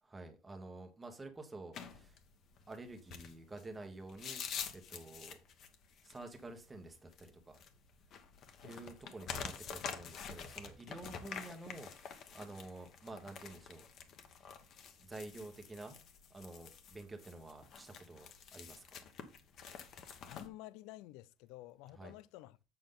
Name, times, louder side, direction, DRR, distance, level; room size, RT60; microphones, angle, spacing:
voice 1, 0.0-2.2 2.7-4.4 4.7-5.4 6.0-7.6 8.6-13.8 15.0-16.0 16.3-19.1 21.9-22.1, right 2 dB, 10° right, 1.4 m, -50 dB
sound 1, 1.7-20.5, left 7 dB, 40° left, 1.2 m, -48 dB
voice 2, 20.3-22.6, left 16 dB, 70° left, 0.5 m, -52 dB
7.4 x 6.9 x 3.9 m
cardioid pair, 150°, 0 cm